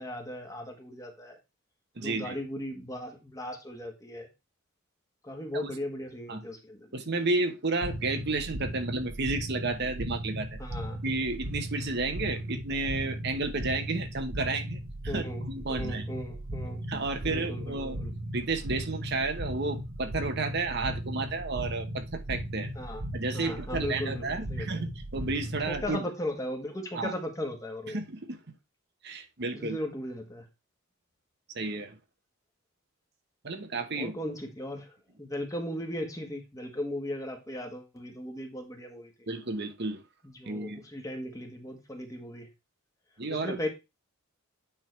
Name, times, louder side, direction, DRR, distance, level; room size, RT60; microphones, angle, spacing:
voice 1, 0.0-1.4 2.0-4.3 5.2-7.0 10.6-11.0 15.1-16.8 17.2-18.1 22.7-23.0 23.3-24.8 25.7-28.0 29.5-30.4 33.9-39.1 40.2-42.5 43.3-43.7, left 1 dB, 15° left, 1.4 m, -37 dB
voice 2, 2.0-2.4 5.5-5.7 6.3-6.4 6.9-10.6 11.0-16.1 16.9-18.0 18.3-22.7 23.1-26.0 26.9-27.1 27.9-28.4 29.0-29.8 31.5-31.9 33.4-34.1 39.3-40.0 40.5-40.8 43.2-43.6, right 3 dB, 50° right, 1.0 m, -32 dB
sound 1, 7.8-25.9, equal, 80° right, 1.3 m, -37 dB
8.9 x 3.7 x 4.6 m
head